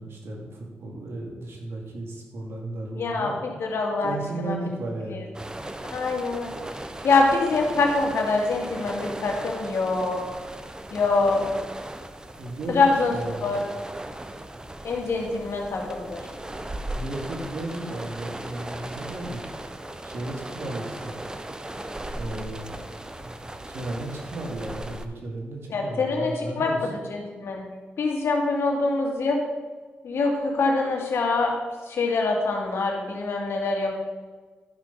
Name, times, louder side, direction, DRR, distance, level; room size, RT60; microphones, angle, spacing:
voice 1, 0.0-3.3 4.0-5.3 12.4-13.6 16.9-19.4 20.0-21.2 22.2-22.7 23.1-26.8, right 2 dB, 75° right, 0 dB, 2.3 m, -35 dB
voice 2, 3.0-4.6 5.1-5.2 5.8-6.5 7.0-10.4 10.9-11.4 12.7-13.1 13.4-13.6 14.8-16.2 25.7-27.6 28.0-29.4 30.0-31.5 31.9-33.9, left 3 dB, 75° left, 0 dB, 2.1 m, -24 dB
sound 1, 5.3-25.1, right 1 dB, 20° right, 0.8 m, -37 dB
12.0 x 5.8 x 5.6 m, 1.4 s
cardioid pair, 65°, 4 cm